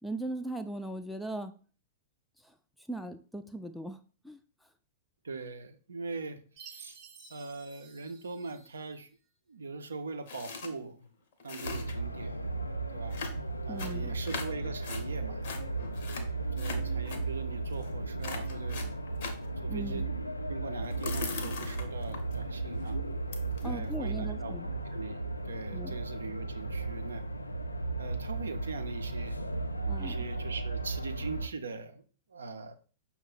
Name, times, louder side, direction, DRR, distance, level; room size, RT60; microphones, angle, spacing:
voice 1, 0.0-1.5 2.9-4.0 4.2-4.4 13.7-14.1 19.7-20.0 23.6-24.7 25.7-26.0 29.9-30.2, right 1 dB, ahead, 0.4 m, -38 dB
voice 2, 5.2-7.0 7.3-9.1 9.5-11.1 11.4-12.5 12.9-13.2 13.6-15.4 16.5-18.8 19.6-20.1 20.5-23.0 23.6-24.5 24.9-27.3 28.0-29.4 30.0-32.0 32.3-32.7, right 4 dB, 75° right, 0.5 m, -41 dB
Chime, 6.6-9.0, right 6 dB, 30° right, 0.8 m, -52 dB
sound 1, 10.3-10.7 11.0-11.1 11.3-12.1 13.1-15.0 15.4-17.2 17.7-17.9 18.2-19.5 20.8-22.3 22.8-22.9 23.3-23.9, left 4 dB, 55° left, 0.8 m, -40 dB
sound 2, 11.6-31.5, right 3 dB, 90° left, 0.3 m, -35 dB
5.5 x 2.1 x 3.9 m
figure-of-eight pair, 100°, 0 cm